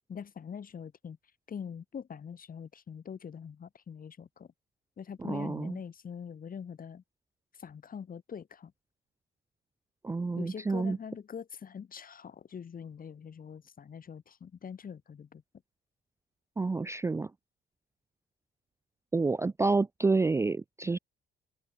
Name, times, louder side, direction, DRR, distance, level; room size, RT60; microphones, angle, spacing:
voice 1, 0.1-1.2 1.5-4.5 5.0-7.0 7.6-8.7 10.4-15.4, left 7 dB, 45° left, 2.2 m, -43 dB
voice 2, 5.2-5.8 10.0-11.0 16.6-17.3 19.1-21.0, right 3 dB, 15° right, 0.4 m, -29 dB
open air
cardioid pair, 90°, 20 cm